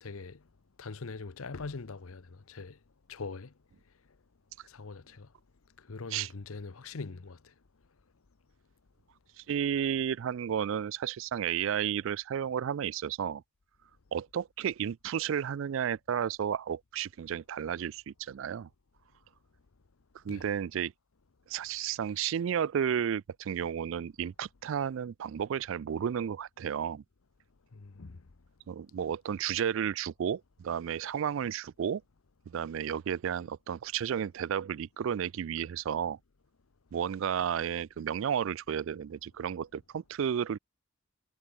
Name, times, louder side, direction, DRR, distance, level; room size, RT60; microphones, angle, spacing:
voice 1, 0.0-0.4 0.8-2.8 3.1-3.5 4.7-5.3 5.9-7.4 20.3-20.4 27.7-28.2, left 4 dB, 75° left, 0.8 m, -42 dB
voice 2, 9.4-13.4 14.1-18.7 20.2-20.9 21.5-27.0 28.7-32.0 32.5-36.2 36.9-40.6, right 8 dB, 65° right, 0.3 m, -32 dB
head